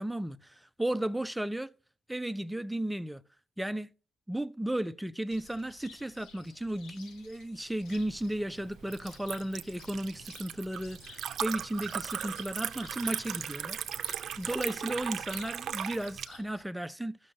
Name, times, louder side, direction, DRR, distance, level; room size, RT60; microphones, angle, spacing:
voice 1, 0.0-1.7 2.1-3.2 3.6-3.9 4.3-13.8 14.4-17.2, right 1 dB, 5° right, 0.4 m, -34 dB
Cricket, 5.3-16.6, left 4 dB, 85° left, 1.2 m, -55 dB
Liquid, 7.9-16.3, right 9 dB, 60° right, 0.5 m, -38 dB
14.5 x 6.2 x 2.7 m
cardioid pair, 90°, 0 cm